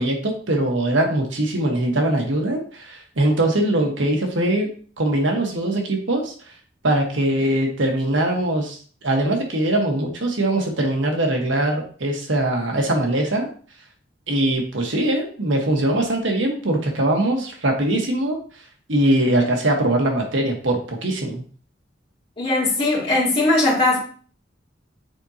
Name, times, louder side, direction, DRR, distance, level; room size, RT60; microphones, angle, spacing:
voice 1, 0.0-4.7 5.0-6.3 6.8-13.5 14.3-18.4 18.9-21.4, right 1 dB, 75° right, 1 dB, 1.4 m, -21 dB
voice 2, 22.4-24.0, left 2 dB, 30° left, -7 dB, 2.7 m, -19 dB
6.9 x 4.9 x 2.9 m, 0.43 s
head